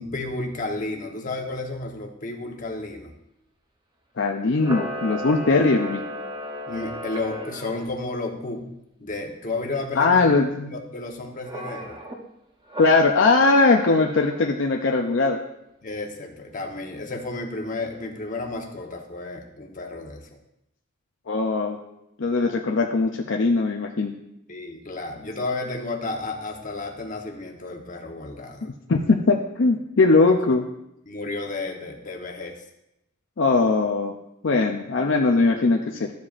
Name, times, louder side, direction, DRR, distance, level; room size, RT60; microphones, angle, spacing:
voice 1, 0.0-3.1 5.5-5.7 6.7-8.7 9.0-12.0 15.8-20.3 24.5-28.7 31.1-32.6, left 2 dB, 40° left, 2 dB, 1.1 m, -32 dB
voice 2, 4.2-6.0 9.9-10.7 12.8-15.4 21.3-21.8 22.2-24.1 28.6-30.6 33.4-34.2 34.4-36.1, left 3 dB, 60° left, 1 dB, 0.5 m, -20 dB
Camera, 4.5-7.9 11.4-12.2 12.7-14.5, equal, 20° right, 0.8 m, -35 dB
13.0 x 7.3 x 2.5 m, 0.84 s
head